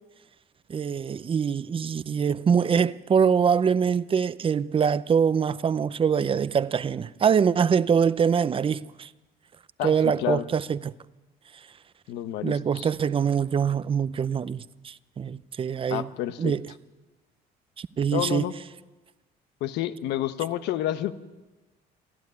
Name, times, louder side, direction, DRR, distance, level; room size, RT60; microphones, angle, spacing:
voice 1, 0.7-9.1 9.8-10.9 12.4-16.1 16.4-16.6 17.8-18.5, right 7 dB, 30° right, 0.6 m, -24 dB
voice 2, 9.8-10.4 12.1-12.9 15.9-16.5 18.1-18.5 19.6-21.1, left 13 dB, 85° left, 1.1 m, -29 dB
28.0 x 11.5 x 9.6 m
cardioid pair, 110°, 17 cm